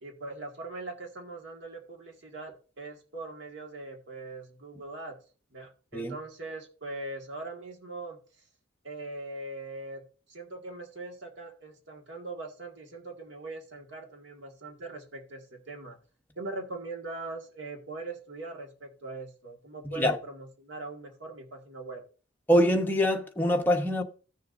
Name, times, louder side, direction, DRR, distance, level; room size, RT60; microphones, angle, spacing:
voice 1, 0.0-5.2 5.5-8.2 8.8-10.0 10.3-16.0 16.4-22.0, right 2 dB, 65° right, 1.8 m, -41 dB
voice 2, 22.5-24.0, equal, 10° left, 0.9 m, -24 dB
15.5 x 6.6 x 2.5 m
head